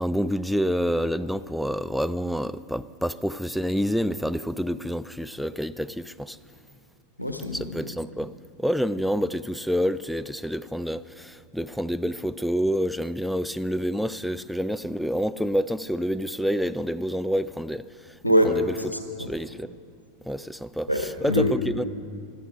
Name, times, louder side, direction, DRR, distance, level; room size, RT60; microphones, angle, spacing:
voice 1, 0.0-6.4 7.5-18.2 18.4-18.7 19.3-19.7 20.3-21.8, equal, ahead, 0.3 m, -28 dB
voice 2, 7.2-7.9 18.2-18.6 18.9-19.3 20.9-21.6, equal, 85° left, 1.1 m, -24 dB
15.5 x 11.5 x 5.2 m
figure-of-eight pair, 90°, 0 cm